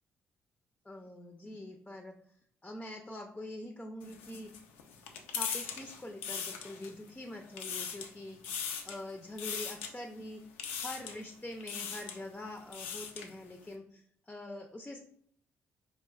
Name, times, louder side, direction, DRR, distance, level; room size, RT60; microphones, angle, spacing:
voice 1, 0.8-2.1 2.6-4.5 5.3-10.4 10.8-14.0 14.3-15.0, left 1 dB, 15° left, 3 dB, 0.5 m, -44 dB
sound 1, 4.0-7.1 7.4-8.1 8.4-9.0 9.4-9.9 10.6-11.2 11.6-12.2 12.6-13.3, left 7 dB, 90° left, 0.3 m, -39 dB
4.5 x 2.4 x 2.3 m, 0.65 s
hypercardioid pair, 50°, 6 cm